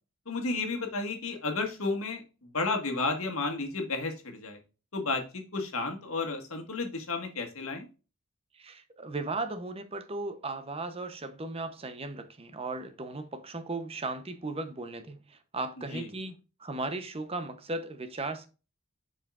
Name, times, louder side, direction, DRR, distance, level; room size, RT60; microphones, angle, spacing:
voice 1, 0.2-2.2 2.5-4.6 4.9-7.9 15.9-16.1, left 3 dB, 70° left, 1.8 m, -32 dB
voice 2, 8.5-18.5, right 2 dB, 25° right, 0.8 m, -36 dB
7.5 x 5.6 x 2.4 m
head